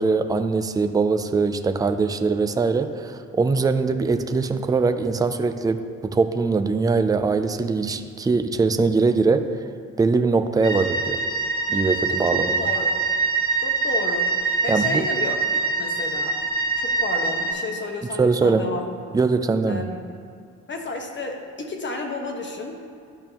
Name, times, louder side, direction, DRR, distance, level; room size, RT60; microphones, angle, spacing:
voice 1, 0.0-9.5 10.0-11.2 11.7-12.6 14.7-15.1 18.2-18.6 19.1-19.8, right 4 dB, 15° right, 8 dB, 0.4 m, -22 dB
sound 1, 10.6-17.5, right 4 dB, 15° left, 1.6 m, -24 dB
voice 2, 12.3-12.9 13.6-15.3 15.8-16.4 16.8-18.8 19.7-20.0 20.7-22.8, left 3 dB, 40° left, 3 dB, 1.1 m, -32 dB
12.5 x 5.3 x 3.0 m, 2.3 s
cardioid pair, 90°, 30 cm